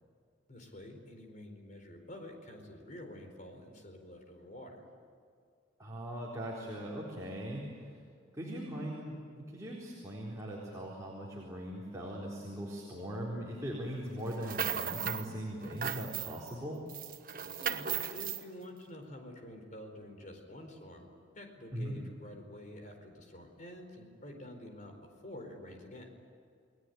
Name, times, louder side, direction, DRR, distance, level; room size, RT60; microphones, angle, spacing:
voice 1, 0.5-4.8 17.6-21.1 21.3-24.9 25.2-26.1, left 1 dB, 40° left, 4 dB, 4.5 m, -48 dB
voice 2, 5.8-7.6 8.3-16.8 21.7-21.9, equal, 15° right, -5 dB, 4.1 m, -40 dB
sound 1, 14.3-15.3 15.6-16.5 16.9-18.4, right 8 dB, 45° right, 1.2 m, -36 dB
30.0 x 20.0 x 9.5 m, 2.2 s
head